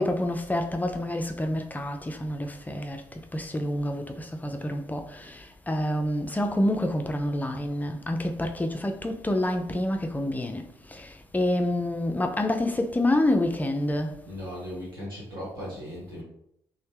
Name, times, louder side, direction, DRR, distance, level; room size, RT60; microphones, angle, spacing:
voice 1, 0.0-14.2, left 1 dB, 15° left, 0.4 m, -28 dB
voice 2, 14.2-16.2, equal, 90° right, 0.9 m, -37 dB
3.0 x 2.0 x 3.2 m
figure-of-eight pair, 40°, 11 cm